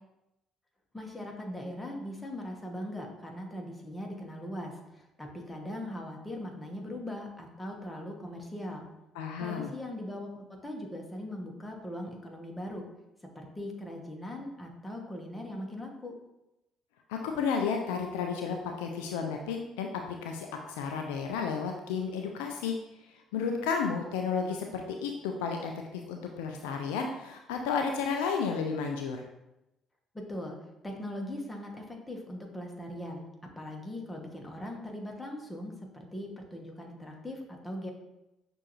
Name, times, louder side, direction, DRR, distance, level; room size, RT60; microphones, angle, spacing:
voice 1, 0.9-8.9 9.4-10.3 10.6-12.8 13.3-16.2 30.1-30.6 30.8-37.9, left 1 dB, 15° left, 1 dB, 1.1 m, -40 dB
voice 2, 9.2-9.7 17.1-19.9 20.2-22.8 23.3-29.2, left 5 dB, 70° left, 3 dB, 0.3 m, -32 dB
6.2 x 2.6 x 3.0 m, 0.91 s
figure-of-eight pair, 50°, 0 cm